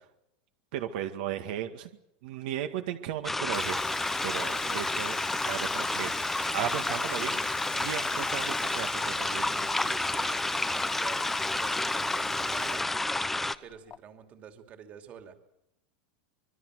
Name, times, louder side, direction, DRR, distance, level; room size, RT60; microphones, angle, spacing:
voice 1, 0.7-1.9 2.2-3.8 4.2-5.2 5.4-7.4 7.7-9.5, right 11 dB, 60° right, 6 dB, 1.9 m, -35 dB
sound 1, 3.2-13.6, left 2 dB, 5° left, 0.8 m, -30 dB
Domestic sounds home sounds, 3.5-12.9 13.1-14.0, left 9 dB, 25° left, 1.4 m, -44 dB
voice 2, 4.3-5.3 9.5-12.9 13.6-15.4, right 8 dB, 30° right, 6 dB, 2.8 m, -48 dB
25.5 x 22.0 x 6.5 m, 0.83 s
supercardioid pair, 160°, 5 cm